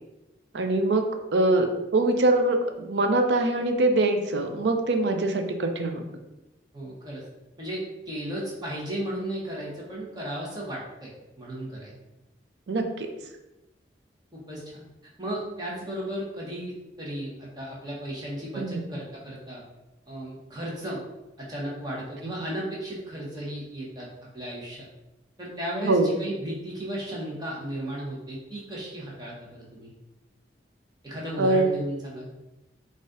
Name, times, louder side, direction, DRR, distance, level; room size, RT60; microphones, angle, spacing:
voice 1, 0.5-1.1 1.3-6.0 12.7-13.1 18.6-18.8 25.8-26.1 31.4-31.7, right 2 dB, 80° right, 5 dB, 0.5 m, -23 dB
voice 2, 6.7-7.2 7.6-11.1 11.4-11.9 14.3-14.8 15.2-19.6 20.1-21.0 21.4-24.9 25.4-29.9 31.0-32.3, right 1 dB, 25° right, -5 dB, 1.0 m, -35 dB
4.0 x 2.5 x 3.7 m, 1.0 s
head